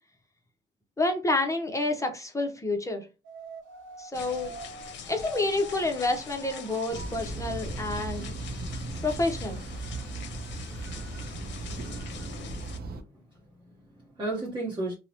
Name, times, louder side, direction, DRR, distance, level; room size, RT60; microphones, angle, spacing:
voice 1, 1.0-3.0 4.0-4.5 5.1-8.2 9.0-9.6, left 2 dB, 15° left, 0.5 m, -28 dB
sound 1, 3.2-7.2 7.9-9.1 9.4-9.5 9.7-11.3 11.6-12.2, right 3 dB, 80° right, 1.0 m, -48 dB
sound 2, 4.1-12.8, left 6 dB, 65° left, 0.6 m, -44 dB
sound 3, 6.9-13.0, right 2 dB, 50° right, 0.5 m, -37 dB
voice 2, 12.9-14.9, right 2 dB, 25° right, 0.8 m, -35 dB
2.8 x 2.0 x 2.6 m
cardioid pair, 90°, 20 cm